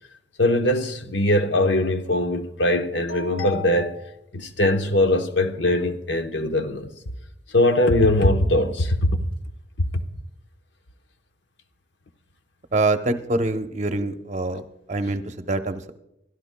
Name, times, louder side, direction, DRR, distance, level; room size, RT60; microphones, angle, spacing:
voice 1, 0.4-6.9 7.5-9.2 9.9-10.0 14.0-14.1 15.0-15.1, left 1 dB, 80° left, 1.0 m, -21 dB
voice 2, 12.7-14.6 14.9-15.9, right 2 dB, 40° right, 0.7 m, -25 dB
23.0 x 13.0 x 2.2 m
head